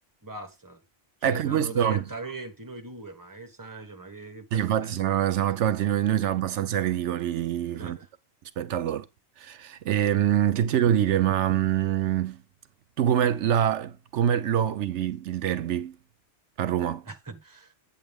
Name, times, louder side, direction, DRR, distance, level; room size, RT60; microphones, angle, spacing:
voice 1, 0.2-0.8 1.2-4.9 7.7-8.1 17.0-17.7, right 2 dB, 15° right, 1.3 m, -40 dB
voice 2, 1.2-2.0 4.5-8.0 8.6-9.1 9.4-12.4 13.0-16.0 16.6-17.0, right 10 dB, 80° right, 0.9 m, -25 dB
9.1 x 7.3 x 3.5 m
omnidirectional pair, 1.2 m